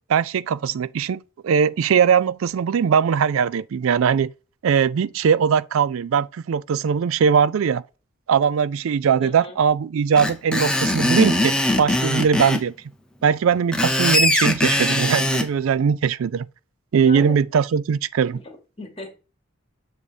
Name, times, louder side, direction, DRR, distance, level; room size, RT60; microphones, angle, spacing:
voice 1, 0.1-4.3 4.6-7.8 8.3-12.7 13.2-16.5 16.9-18.4, right 7 dB, 80° right, 0.4 m, -20 dB
voice 2, 9.2-9.6 15.8-15.9 17.0-17.5 18.3-19.1, left 2 dB, 25° left, 1.7 m, -37 dB
Screech, 10.1-12.6 13.5-15.5, left 1 dB, 5° left, 0.8 m, -21 dB
7.5 x 3.1 x 4.9 m
head